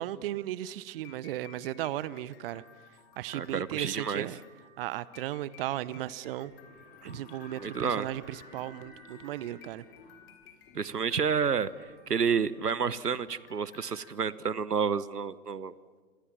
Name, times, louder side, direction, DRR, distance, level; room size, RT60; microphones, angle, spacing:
voice 1, 0.0-2.6 3.2-4.4 4.8-6.5 7.0-9.8, right 14 dB, 40° right, 19 dB, 0.8 m, -36 dB
sound 1, 0.9-14.1, left 7 dB, 40° left, 4.0 m, -57 dB
voice 2, 3.3-4.3 7.0-7.2 7.6-8.1 10.7-11.7 12.1-15.7, right 6 dB, 90° right, 18 dB, 1.1 m, -30 dB
sound 2, 6.3-13.2, left 2 dB, 20° left, 7.9 m, -56 dB
Gurgling / Bathtub (filling or washing), 6.4-11.6 11.9-12.0, left 4 dB, 60° left, 6.3 m, -58 dB
27.0 x 26.5 x 7.4 m, 1.5 s
figure-of-eight pair, 120°, 45 cm